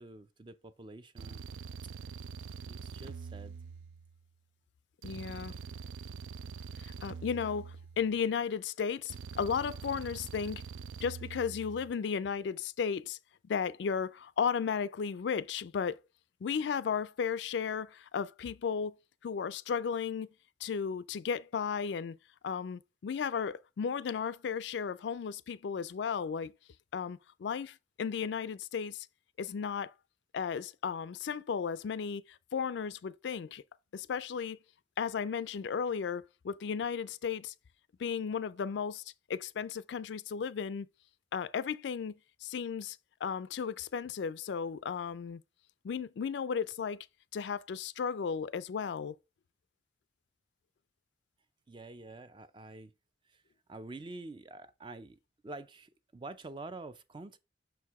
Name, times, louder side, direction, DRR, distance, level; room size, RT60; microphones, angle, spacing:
voice 1, 0.0-1.4 2.7-3.6 51.7-52.9 53.3-53.4 53.7-57.4, right 2 dB, 25° right, 0.4 m, -47 dB
sound 1, 1.2-4.3 5.0-8.3 9.1-11.9, right 5 dB, 90° right, 0.4 m, -44 dB
voice 2, 5.0-5.6 6.8-10.6 11.0-13.2 13.4-16.0 16.4-18.9 19.2-20.3 20.6-22.2 22.4-26.5 26.9-29.1 29.4-29.9 30.3-33.6 33.9-34.6 35.0-37.5 38.0-39.0 39.3-40.9 41.3-42.1 42.4-45.4 45.8-47.1 47.3-49.1, left 6 dB, 70° left, 0.3 m, -34 dB
6.3 x 4.7 x 3.5 m
head